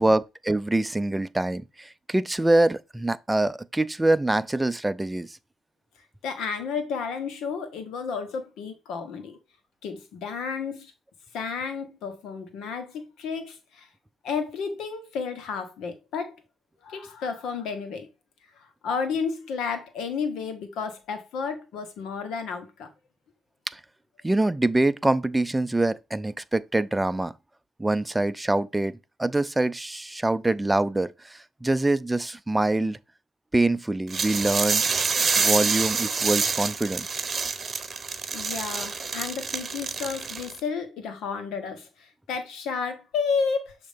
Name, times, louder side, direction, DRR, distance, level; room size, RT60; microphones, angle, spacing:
voice 1, 0.0-5.4 23.7-23.8 24.2-27.3 27.8-33.0 33.5-34.8 35.4-37.1, right 2 dB, 10° right, 0.4 m, -24 dB
voice 2, 6.2-9.4 9.8-10.9 11.3-13.9 14.2-16.3 16.8-18.1 18.6-22.9 38.3-43.8, left 5 dB, 80° left, 1.3 m, -32 dB
sound 1, 34.1-40.6, right 5 dB, 40° right, 0.9 m, -27 dB
6.5 x 2.9 x 5.1 m
cardioid pair, 90°, 0 cm